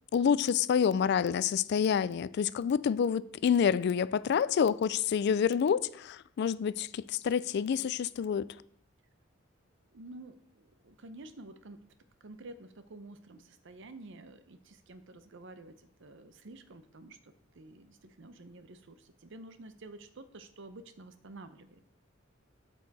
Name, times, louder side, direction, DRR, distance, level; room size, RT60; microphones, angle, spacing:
voice 1, 0.1-8.6, left 7 dB, 55° left, 0.3 m, -28 dB
voice 2, 9.9-11.8 12.2-21.9, right 2 dB, 65° right, 0.7 m, -50 dB
12.0 x 4.6 x 4.1 m
head